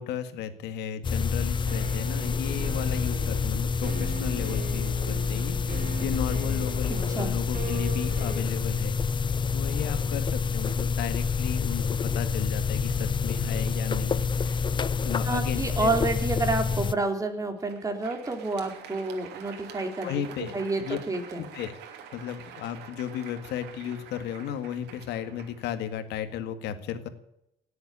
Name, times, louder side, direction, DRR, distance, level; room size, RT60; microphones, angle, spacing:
voice 1, 0.0-9.0 9.5-16.0 20.0-20.5 20.8-21.0 21.4-21.7 22.1-27.1, left 9 dB, 80° left, 9 dB, 1.9 m, -35 dB
sound 1, 1.0-16.9, left 5 dB, 30° left, 0.6 m, -28 dB
sound 2, 1.7-8.4, right 2 dB, 60° right, 3.9 m, -39 dB
voice 2, 6.9-7.4 15.2-21.4, right 3 dB, 20° right, 4 dB, 3.4 m, -29 dB
Crowd, 17.5-26.4, right 7 dB, 80° right, 2.9 m, -46 dB
18.0 x 8.0 x 10.0 m, 0.80 s
cardioid pair, 110°, 17 cm